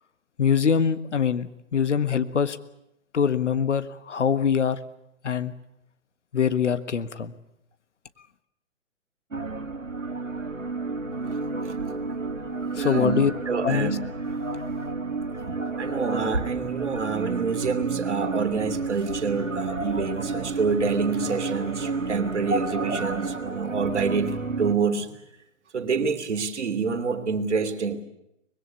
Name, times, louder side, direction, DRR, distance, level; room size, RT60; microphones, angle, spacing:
voice 1, 0.4-2.6 3.1-4.8 5.2-5.5 6.3-7.3 12.7-13.3 13.6-14.0, left 7 dB, 70° left, 12 dB, 1.6 m, -23 dB
sound 1, 9.3-24.7, right 3 dB, 85° right, 2.3 m, -30 dB
voice 2, 12.8-14.0 15.8-25.1 25.7-28.0, right 5 dB, 65° right, 7 dB, 2.9 m, -27 dB
24.0 x 21.0 x 8.3 m, 0.82 s
figure-of-eight pair, 125°, 38 cm